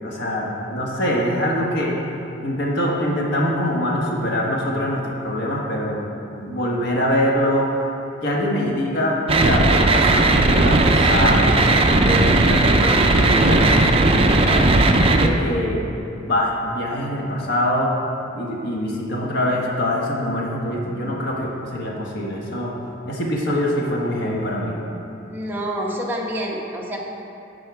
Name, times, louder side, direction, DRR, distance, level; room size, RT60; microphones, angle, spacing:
voice 1, 0.0-2.0 2.4-6.0 6.3-7.7 8.2-11.7 12.0-14.7 15.2-15.8 16.2-17.9 18.3-22.7 23.0-24.8, left 1 dB, 65° left, -2 dB, 1.4 m, -24 dB
sound 1, 9.3-15.3, right 2 dB, 30° right, 0.5 m, -16 dB
voice 2, 25.3-27.0, equal, 10° right, -3 dB, 1.0 m, -27 dB
11.0 x 4.9 x 4.7 m, 2.7 s
head